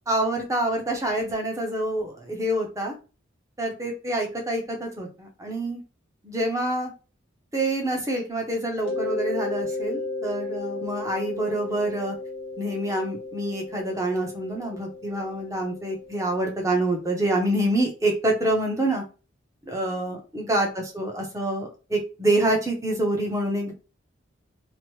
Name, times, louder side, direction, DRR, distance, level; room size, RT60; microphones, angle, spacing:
voice 1, 0.1-2.9 3.6-5.8 6.2-6.9 7.5-12.1 12.6-19.0 19.7-23.7, right 1 dB, 15° right, 1 dB, 0.7 m, -26 dB
Mallet percussion, 8.8-17.4, left 2 dB, 80° left, 1.0 m, -34 dB
2.9 x 2.1 x 3.0 m, 0.33 s
head